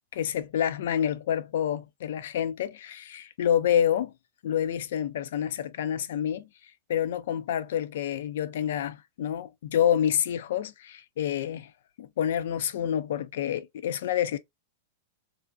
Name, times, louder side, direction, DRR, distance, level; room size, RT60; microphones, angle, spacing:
voice 1, 0.1-4.1 4.4-6.5 6.9-11.7 12.0-14.4, left 9 dB, 70° left, 0.3 m, -28 dB
2.5 x 2.2 x 2.4 m
hypercardioid pair, 120°, 0 cm